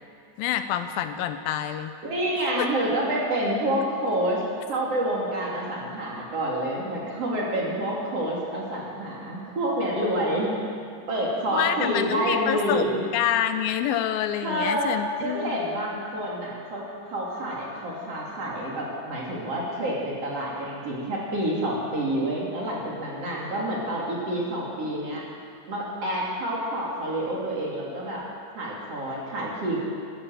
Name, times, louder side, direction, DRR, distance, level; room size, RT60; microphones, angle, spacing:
voice 1, 0.4-2.0 2.6-2.7 11.5-12.9 13.1-15.6, left 10 dB, 80° left, 10 dB, 2.4 m, -27 dB
voice 2, 2.0-4.4 4.7-10.5 11.1-13.0 14.4-14.9 15.2-16.8 17.1-25.3 25.7-28.2 28.5-29.8, right 1 dB, 45° right, -4 dB, 3.4 m, -28 dB
14.0 x 13.0 x 7.8 m, 2.4 s
omnidirectional pair, 4.3 m